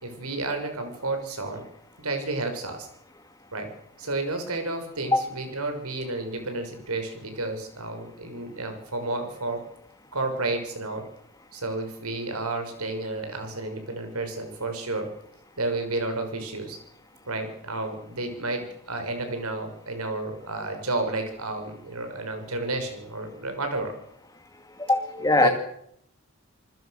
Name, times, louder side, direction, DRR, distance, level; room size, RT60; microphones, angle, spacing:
voice 1, 0.0-1.6 2.0-2.9 3.5-3.7 4.0-9.6 10.1-11.1 11.5-15.1 15.6-16.8 17.3-24.0 25.4-25.5, right 2 dB, 90° right, 6 dB, 6.1 m, -31 dB
voice 2, 24.9-25.5, left 2 dB, 15° left, 7 dB, 2.5 m, -20 dB
28.5 x 20.0 x 6.6 m, 0.72 s
head